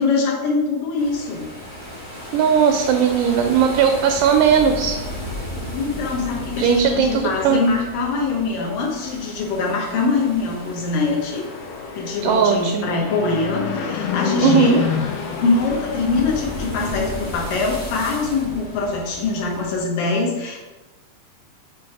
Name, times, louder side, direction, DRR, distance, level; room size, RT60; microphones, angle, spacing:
voice 1, 0.0-1.5 5.7-11.4 12.0-14.9 15.4-20.6, left 4 dB, 75° left, -1 dB, 2.7 m, -23 dB
sound 1, 0.9-19.8, left 1 dB, 30° left, 0.3 m, -35 dB
voice 2, 2.3-5.0 6.6-7.6 12.2-13.0 14.4-14.8, right 7 dB, 80° right, 5 dB, 1.9 m, -18 dB
Fixed-wing aircraft airplane, 10.5-17.8, left 7 dB, 90° left, 2.4 m, -29 dB
7.5 x 3.0 x 4.7 m, 1.1 s
omnidirectional pair, 4.0 m